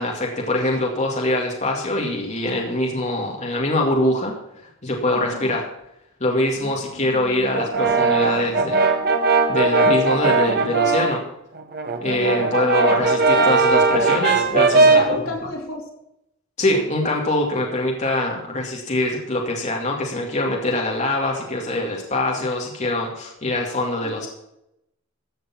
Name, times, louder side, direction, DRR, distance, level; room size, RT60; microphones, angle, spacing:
voice 1, 0.0-4.3 4.8-5.7 6.2-8.8 9.5-11.2 12.0-15.0 16.6-24.3, left 1 dB, 35° left, -1 dB, 2.3 m, -23 dB
voice 2, 5.1-5.5 6.5-7.5 14.8-15.8 24.0-24.3, left 2 dB, 75° left, 0 dB, 3.2 m, -33 dB
Brass instrument, 7.5-11.2 11.6-15.2, right 3 dB, 50° right, 1.3 m, -18 dB
15.0 x 7.0 x 5.9 m, 0.83 s
head